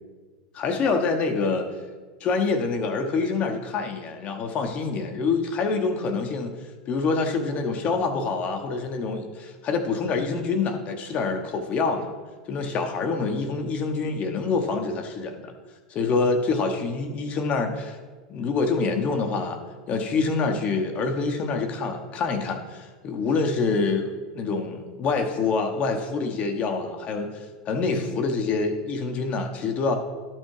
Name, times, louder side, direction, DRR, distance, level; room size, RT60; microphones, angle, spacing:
voice 1, 0.5-1.7 2.2-6.5 6.9-12.1 12.5-15.5 15.9-18.0 18.3-19.6 19.9-29.9, left 4 dB, 40° left, 5 dB, 1.1 m, -26 dB
11.5 x 4.6 x 4.8 m, 1.4 s
hypercardioid pair, 95°, 3 cm